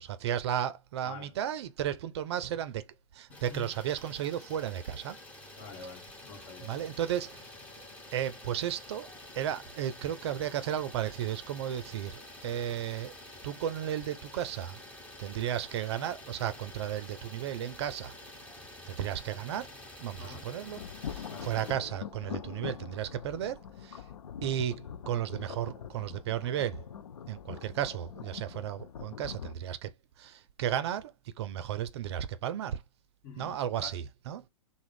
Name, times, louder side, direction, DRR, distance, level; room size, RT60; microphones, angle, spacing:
voice 1, 0.0-2.9 3.1-5.2 6.6-7.8 8.1-9.1 9.4-13.1 13.4-14.8 15.2-18.1 18.8-19.7 20.0-24.0 24.4-26.8 27.3-29.9 30.2-32.8 33.4-34.5, right 10 dB, 50° right, 0.5 m, -34 dB
voice 2, 3.3-3.7 5.6-6.7 20.2-20.4 21.3-21.5 33.2-33.6 33.8-33.9, left 5 dB, 40° left, 1.2 m, -46 dB
Idling, 3.3-21.7, left 1 dB, 10° left, 0.9 m, -49 dB
sound 1, 20.6-29.5, left 8 dB, 80° left, 0.4 m, -43 dB
3.5 x 2.1 x 3.4 m
hypercardioid pair, 125°, 18 cm